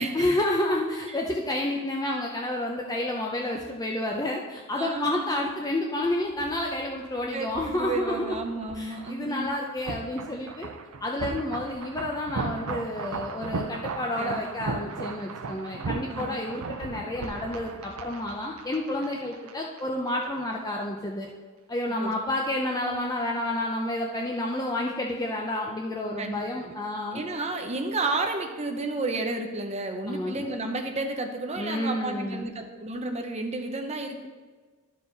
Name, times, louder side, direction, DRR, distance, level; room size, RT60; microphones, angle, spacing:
voice 1, 0.0-8.4 8.7-10.7 11.0-21.3 21.7-27.2 30.1-30.5 31.6-32.5, left 1 dB, 20° left, -1 dB, 0.6 m, -30 dB
voice 2, 4.7-5.5 7.3-9.5 14.2-14.5 16.1-16.4 21.9-22.1 26.2-26.7 27.1-34.3, right 2 dB, 30° right, 4 dB, 0.7 m, -32 dB
sound 1, 6.0-19.8 20.1-20.2, right 4 dB, 80° right, 0.5 m, -37 dB
13.0 x 4.7 x 4.0 m, 1.4 s
head